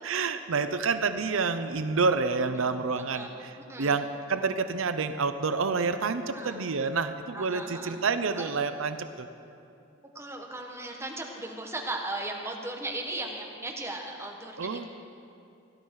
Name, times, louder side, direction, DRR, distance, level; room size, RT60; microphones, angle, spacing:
voice 1, 0.0-9.3 14.6-14.8, right 4 dB, 85° right, 10 dB, 0.6 m, -28 dB
voice 2, 7.3-8.0 8.3-8.5 10.1-14.9, right 2 dB, 15° right, 1 dB, 1.4 m, -37 dB
17.0 x 11.5 x 4.7 m, 2.7 s
head